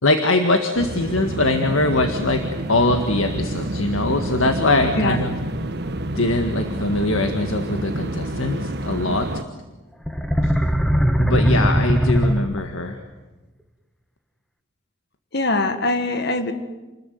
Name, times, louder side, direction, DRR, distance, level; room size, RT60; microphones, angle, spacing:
voice 1, 0.0-2.4 2.7-5.4 6.2-9.3 10.4-10.5 11.2-13.0, left 2 dB, 75° left, 6 dB, 1.9 m, -22 dB
sound 1, 0.8-9.4, right 1 dB, 50° right, 1.5 m, -28 dB
sound 2, 10.1-12.9, equal, ahead, 1.3 m, -19 dB
voice 2, 15.3-16.5, left 2 dB, 50° left, 9 dB, 1.8 m, -22 dB
29.5 x 20.5 x 9.5 m, 1.1 s
head